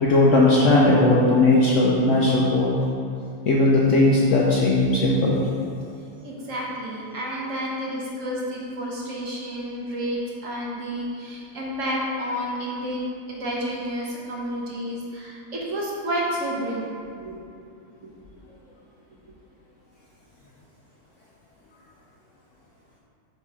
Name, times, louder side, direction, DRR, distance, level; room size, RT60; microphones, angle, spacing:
voice 1, 0.0-2.8 3.5-5.4, left 2 dB, 65° left, -4 dB, 0.8 m, -18 dB
voice 2, 6.2-13.0 13.3-17.4, equal, 55° right, -4 dB, 1.2 m, -30 dB
6.7 x 3.0 x 4.7 m, 2.5 s
omnidirectional pair, 1.8 m